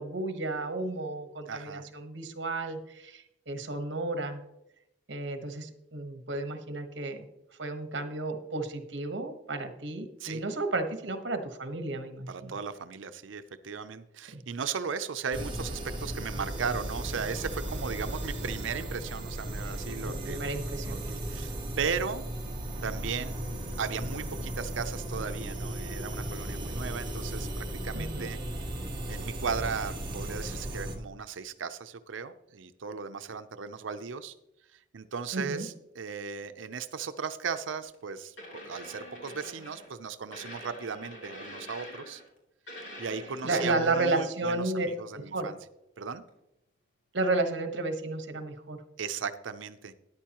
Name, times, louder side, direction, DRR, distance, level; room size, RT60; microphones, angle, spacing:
voice 1, 0.0-4.4 5.1-7.2 7.6-12.6 14.3-14.4 20.1-21.0 27.9-28.3 35.3-35.7 43.4-44.9 45.1-45.5 47.1-48.8, right 2 dB, 65° right, 7 dB, 1.2 m, -32 dB
voice 2, 1.5-1.8 10.2-10.4 12.3-20.5 20.9-22.2 22.8-23.4 23.8-28.4 29.1-34.3 34.7-38.3 38.7-42.2 43.0-45.6 46.0-46.2 49.0-49.9, right 6 dB, 90° right, 10 dB, 0.6 m, -36 dB
sound 1, 15.3-31.0, right 1 dB, 25° right, 1.5 m, -36 dB
sound 2, 37.8-37.9 38.4-39.9 40.3-42.4 42.7-44.0 46.3-46.4, equal, 70° left, 2.9 m, -45 dB
13.0 x 10.0 x 3.0 m, 0.88 s
head